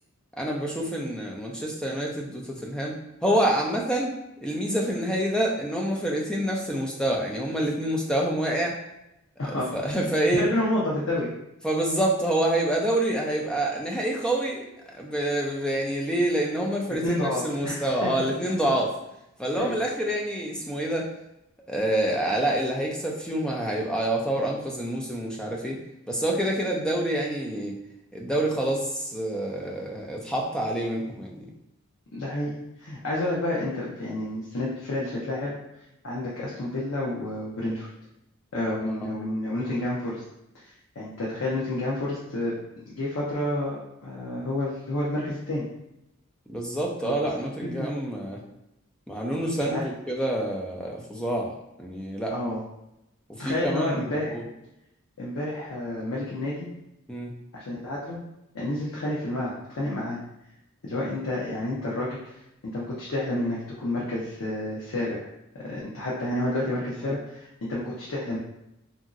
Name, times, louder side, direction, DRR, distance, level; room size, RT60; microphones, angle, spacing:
voice 1, 0.4-3.0 3.2-4.1 4.4-8.8 9.4-10.4 11.6-14.7 14.9-18.9 19.4-21.1 21.7-25.8 26.1-27.8 28.1-31.4 38.8-39.1 46.5-48.4 49.1-51.5 51.8-52.3 53.3-54.4 57.1-57.3 66.9-67.0, right 1 dB, 5° left, -1 dB, 0.4 m, -27 dB
voice 2, 9.4-9.8 10.3-11.3 17.0-18.1 18.4-18.5 19.5-19.8 32.1-32.5 32.8-35.5 36.0-37.9 38.5-40.2 40.5-40.6 41.0-42.5 42.9-45.7 47.0-47.3 47.6-47.9 49.6-49.8 52.3-52.6 53.4-54.3 55.2-56.7 57.5-58.2 58.5-60.2 60.8-62.2 62.6-65.3 65.6-68.4, left 1 dB, 85° left, -6 dB, 0.6 m, -29 dB
2.9 x 2.6 x 2.5 m, 0.85 s
head